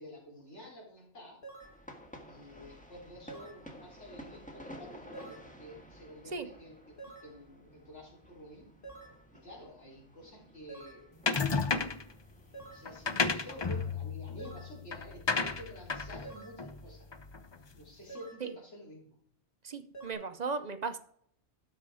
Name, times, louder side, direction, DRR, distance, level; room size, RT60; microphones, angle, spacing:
voice 1, 0.0-1.4 2.3-8.7 9.3-11.3 12.5-17.1 17.7-19.2, equal, 80° left, -3 dB, 4.4 m, -50 dB
sound 1, 1.4-1.8 3.3-3.7 5.1-5.5 7.0-7.4 8.8-9.2 10.7-11.1 12.5-12.9 14.4-14.8 16.2-16.6 18.1-18.5 19.9-20.1, right 3 dB, 50° left, 2.3 m, -48 dB
sound 2, 1.6-13.8, equal, 5° left, 1.5 m, -53 dB
sound 3, 11.3-12.1 12.8-17.5, left 4 dB, 30° left, 0.5 m, -33 dB
voice 2, 19.6-21.0, right 4 dB, 45° right, 10 dB, 0.7 m, -36 dB
12.5 x 6.2 x 4.9 m, 0.65 s
omnidirectional pair, 1.2 m